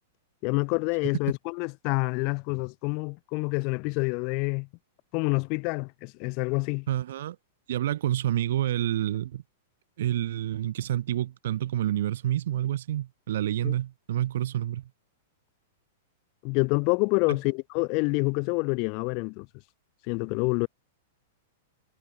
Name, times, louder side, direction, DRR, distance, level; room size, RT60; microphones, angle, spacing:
voice 1, 0.4-4.7 5.1-6.9 13.6-13.7 16.4-19.5 20.1-20.7, left 34 dB, 40° left, 7.5 m, -27 dB
voice 2, 6.9-7.4 7.7-9.4 10.0-14.9, right 12 dB, 70° right, 5.2 m, -28 dB
hypercardioid pair, 150°, 0 cm